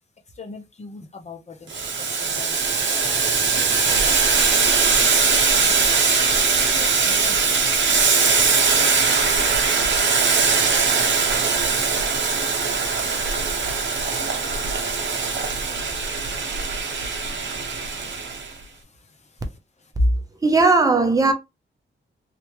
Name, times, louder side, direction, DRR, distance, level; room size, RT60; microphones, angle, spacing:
voice 1, 0.4-1.7 2.3-3.5 3.7-3.8 4.5-5.1 5.5-9.2 10.7-10.8 11.0-11.3, left 4 dB, 35° left, 0.9 m, -43 dB
Boiling, 1.7-18.5, right 5 dB, 65° right, 0.8 m, -21 dB
voice 2, 20.4-21.3, right 3 dB, 15° right, 0.7 m, -17 dB
3.3 x 2.8 x 3.1 m
wide cardioid pair, 165°, 20 cm